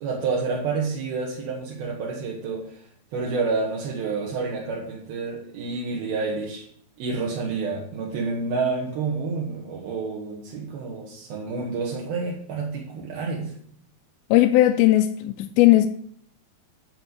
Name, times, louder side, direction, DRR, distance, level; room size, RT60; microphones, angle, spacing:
voice 1, 0.0-2.8 3.1-6.6 7.0-13.5, right 4 dB, 70° right, 3.5 m, -29 dB
voice 2, 14.3-15.9, left 15 dB, 80° left, 2.4 m, -17 dB
13.0 x 4.3 x 8.4 m
omnidirectional pair, 4.5 m